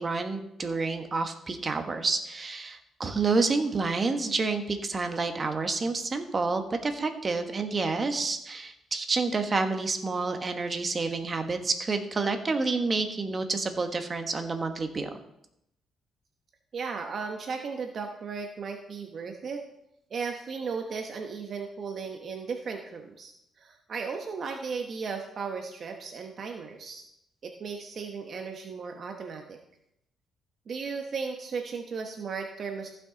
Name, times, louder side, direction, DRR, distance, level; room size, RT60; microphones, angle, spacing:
voice 1, 0.0-15.1, right 3 dB, 35° right, 6 dB, 1.2 m, -29 dB
voice 2, 16.7-19.6 20.1-27.0 27.4-29.6 30.7-32.9, right 5 dB, 55° right, 3 dB, 1.0 m, -36 dB
15.0 x 6.1 x 3.9 m, 0.80 s
cardioid pair, 90°, 0 cm